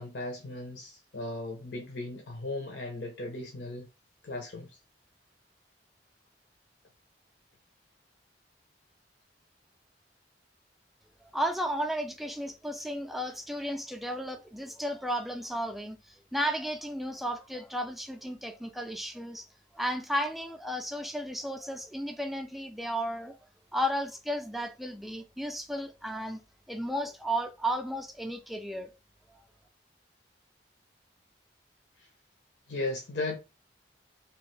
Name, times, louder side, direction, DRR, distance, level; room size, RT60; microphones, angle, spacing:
voice 1, 0.0-3.9 4.2-4.8 32.0-32.1 32.7-33.4, left 2 dB, 75° left, 0.7 m, -36 dB
voice 2, 11.3-19.5 19.7-23.4 23.7-26.4 26.7-28.9, equal, ahead, 0.3 m, -34 dB
3.0 x 2.4 x 3.1 m
head